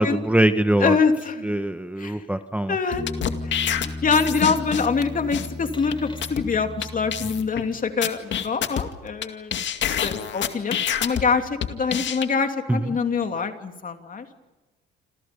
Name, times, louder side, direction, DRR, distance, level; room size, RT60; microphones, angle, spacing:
voice 1, 0.0-1.0 1.4-2.8 12.7-12.9, right 1 dB, 5° right, 8 dB, 1.3 m, -22 dB
voice 2, 0.8-1.5 2.0-2.2 2.7-3.0 3.4-9.6 9.8-14.3, left 5 dB, 45° left, 6 dB, 3.0 m, -25 dB
sound 1, 2.9-5.0 5.3-5.5 5.9-6.0 6.2-6.4 6.8-6.9 7.1-7.6 8.0-9.3 9.5-11.2 11.6-12.3, left 9 dB, 65° left, 2.2 m, -26 dB
sound 2, 3.0-7.9, left 2 dB, 25° left, 2.5 m, -35 dB
28.0 x 28.0 x 5.4 m, 1.1 s
cardioid pair, 90°, 20 cm